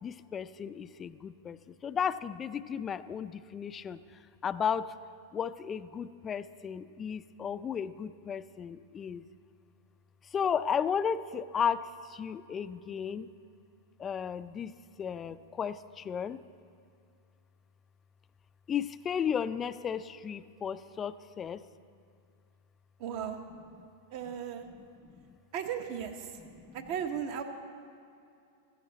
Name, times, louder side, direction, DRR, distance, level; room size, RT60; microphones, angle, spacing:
voice 1, 0.0-4.0 4.4-4.9 5.3-9.3 10.3-13.3 14.0-14.7 15.0-16.4 18.7-21.6 25.1-25.2 26.6-26.8, left 7 dB, 25° left, 13 dB, 0.4 m, -34 dB
voice 2, 23.0-23.4 24.1-24.7 25.5-26.3 26.7-27.4, right 8 dB, 55° right, 5 dB, 1.3 m, -36 dB
16.0 x 13.5 x 4.1 m, 2.4 s
hypercardioid pair, 120°, 0 cm